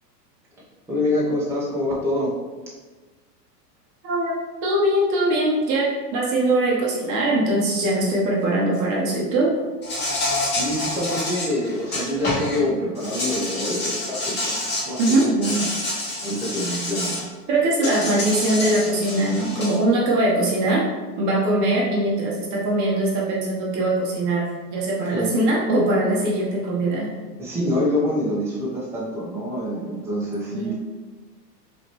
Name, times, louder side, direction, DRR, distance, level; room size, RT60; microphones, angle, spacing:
voice 1, 0.9-2.4 10.5-15.8 16.2-17.3 25.1-25.3 27.4-30.7, left 1 dB, 5° right, -7 dB, 1.0 m, -26 dB
voice 2, 4.6-9.5 15.0-15.2 17.5-20.8 21.2-24.4 24.7-27.1 30.5-30.7, right 1 dB, 35° right, -4 dB, 1.0 m, -21 dB
Insect, 9.8-12.6 13.0-17.2 17.8-19.8, left 1 dB, 20° left, 1.4 m, -28 dB
4.9 x 3.2 x 3.0 m, 1.3 s
hypercardioid pair, 120°, 49 cm